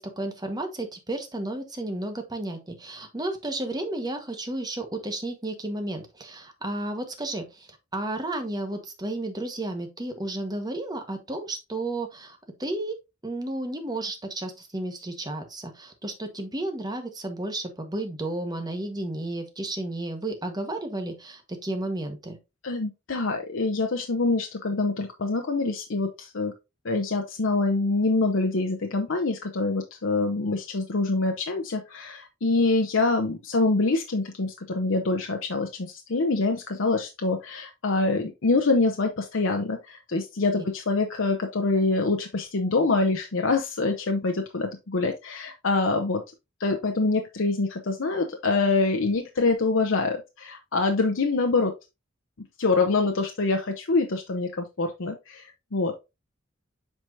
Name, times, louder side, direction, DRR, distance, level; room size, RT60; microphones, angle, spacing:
voice 1, 0.0-13.0 13.2-22.4, right 2 dB, 20° right, 6 dB, 1.2 m, -32 dB
voice 2, 22.6-26.5 26.8-46.2 46.6-51.7 52.6-55.9, left 3 dB, 70° left, 4 dB, 0.7 m, -25 dB
7.9 x 4.6 x 2.6 m, 0.25 s
head